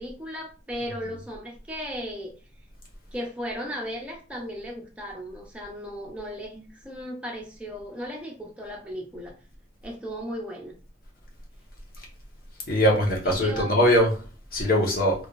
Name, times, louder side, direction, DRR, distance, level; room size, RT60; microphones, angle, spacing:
voice 1, 0.0-2.4 3.1-9.4 9.8-10.7 13.2-13.7, equal, 5° right, 0.7 m, -36 dB
voice 2, 12.7-14.2 14.5-15.1, equal, 55° left, 1.3 m, -21 dB
3.5 x 3.1 x 2.6 m
head